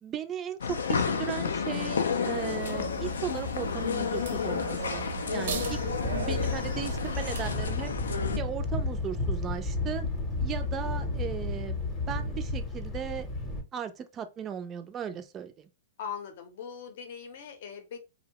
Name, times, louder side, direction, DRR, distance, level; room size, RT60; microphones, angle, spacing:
voice 1, 0.0-5.8 6.2-7.9 8.4-10.1 10.4-13.3 13.7-15.7, right 8 dB, 25° right, 0.3 m, -37 dB
sound 1, 0.6-8.4, left 6 dB, 85° left, 0.4 m, -31 dB
sound 2, 2.3-7.5, right 6 dB, 65° right, 0.6 m, -39 dB
Thunder, 5.6-13.6, left 2 dB, 20° left, 0.7 m, -32 dB
voice 2, 16.0-18.0, left 7 dB, 60° left, 0.7 m, -40 dB
2.7 x 2.0 x 2.9 m
hypercardioid pair, 135°, 0 cm